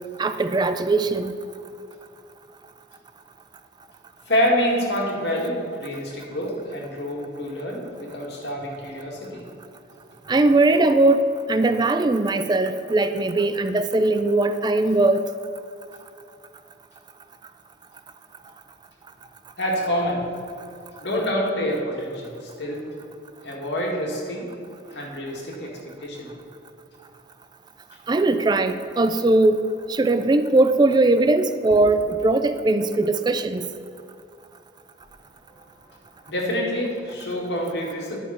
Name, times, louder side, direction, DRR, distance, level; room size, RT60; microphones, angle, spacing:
voice 1, 0.2-1.3 10.3-15.2 28.1-29.6 29.9-33.6, right 2 dB, 25° right, 10 dB, 0.3 m, -20 dB
voice 2, 4.3-9.4 19.6-20.2 21.0-22.8 23.4-24.5 24.9-25.7 26.0-26.3 31.7-31.8 36.3-38.2, equal, 80° left, -2 dB, 2.1 m, -27 dB
10.5 x 5.7 x 5.8 m, 2.6 s
head